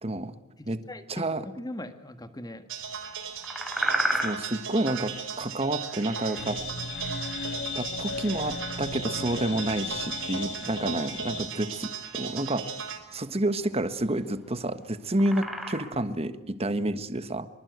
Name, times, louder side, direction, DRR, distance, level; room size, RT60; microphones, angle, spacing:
voice 1, 0.0-0.4 0.7-0.8 1.1-1.4 4.1-6.6 7.7-12.7 13.1-17.5, right 1 dB, 30° right, 11 dB, 1.4 m, -29 dB
voice 2, 0.6-2.7, left 1 dB, 20° left, 9 dB, 1.8 m, -40 dB
sound 1, 2.7-13.0, right 6 dB, 60° right, 4.3 m, -37 dB
sound 2, 3.0-16.0, right 1 dB, ahead, 3.3 m, -35 dB
sound 3, 6.4-11.5, left 4 dB, 55° left, 1.8 m, -36 dB
25.0 x 23.0 x 8.1 m, 1.1 s
head